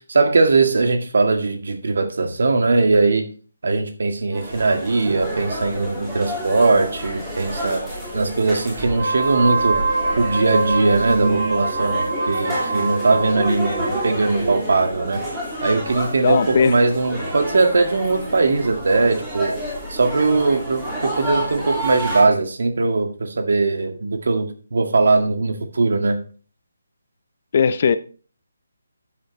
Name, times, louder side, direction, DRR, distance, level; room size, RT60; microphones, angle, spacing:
voice 1, 0.0-3.2 3.6-7.8 8.1-9.8 10.2-15.2 15.6-19.5 19.9-26.2, right 3 dB, 65° right, 1.9 m, -20 dB
sound 1, 4.3-22.2, right 1 dB, 10° right, 3.3 m, -29 dB
Wind instrument woodwind instrument, 8.9-14.1, right 3 dB, 25° right, 4.8 m, -25 dB
voice 2, 16.2-16.7 27.5-28.0, left 6 dB, 35° left, 0.6 m, -17 dB
12.0 x 7.6 x 3.2 m
hypercardioid pair, 170°, 0 cm